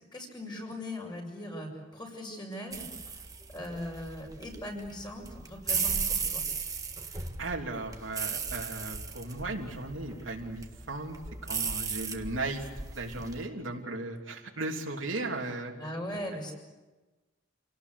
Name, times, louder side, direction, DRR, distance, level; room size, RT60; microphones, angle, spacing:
voice 1, 0.1-2.8 3.5-6.4 15.7-16.5, left 1 dB, 25° left, 1 dB, 5.9 m, -39 dB
sound 1, 2.7-13.4, right 5 dB, 20° right, 1.6 m, -36 dB
voice 2, 7.4-12.6 12.9-15.7, right 2 dB, 85° right, 1 dB, 3.2 m, -36 dB
28.0 x 18.5 x 8.3 m, 1.2 s
head